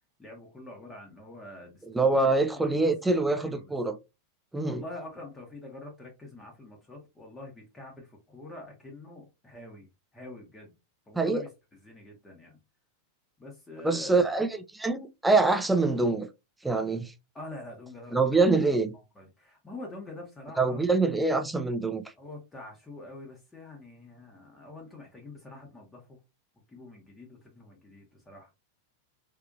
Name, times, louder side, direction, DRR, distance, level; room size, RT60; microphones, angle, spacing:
voice 1, 0.2-2.8 3.2-3.7 4.6-9.9 10.1-10.7 11.1-11.5 11.8-12.6 13.4-14.3 17.3-18.4 19.1-20.8 22.2-26.2 26.7-28.5, left 2 dB, 15° left, 1.0 m, -45 dB
voice 2, 1.9-4.0 4.5-4.8 11.2-11.4 13.8-16.3 16.6-17.1 18.1-18.9 20.6-22.0, right 3 dB, 5° right, 0.4 m, -25 dB
3.6 x 2.7 x 2.5 m
figure-of-eight pair, 90°, 0 cm